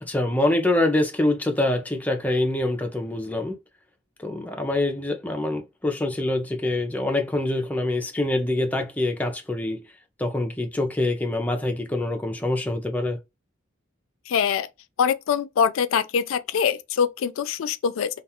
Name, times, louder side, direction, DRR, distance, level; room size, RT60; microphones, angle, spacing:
voice 1, 0.0-3.6 4.2-9.8 10.2-13.2, left 1 dB, 10° left, 0.4 m, -25 dB
voice 2, 14.3-14.7 15.0-18.1, left 7 dB, 75° left, 0.3 m, -23 dB
2.3 x 2.3 x 2.8 m
head